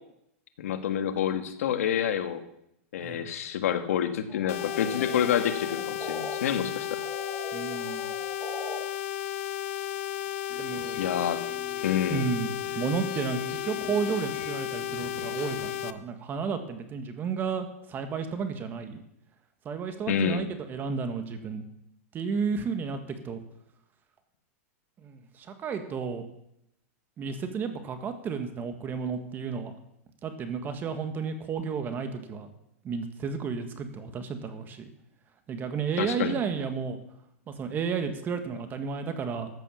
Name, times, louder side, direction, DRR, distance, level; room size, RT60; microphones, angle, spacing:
voice 1, 0.6-2.4 2.9-6.9 11.0-11.4 11.8-12.3 20.1-20.4 36.0-36.4, left 9 dB, 80° left, 8 dB, 1.6 m, -28 dB
sound 1, 4.3-6.4 6.7-8.8, left 1 dB, ahead, 2.3 m, -41 dB
sound 2, 4.5-15.9, left 11 dB, 65° left, 0.9 m, -34 dB
voice 2, 7.5-8.1 10.6-11.0 12.1-19.0 19.6-21.6 22.1-23.0 23.2-23.4 25.0-26.2 27.2-29.7 30.2-32.5 32.8-34.9 35.5-37.0 37.5-39.5, right 5 dB, 25° right, 8 dB, 1.7 m, -32 dB
sound 3, 10.5-15.8, left 7 dB, 35° left, 2.3 m, -46 dB
14.5 x 8.2 x 7.1 m, 0.78 s
supercardioid pair, 145°, 8 cm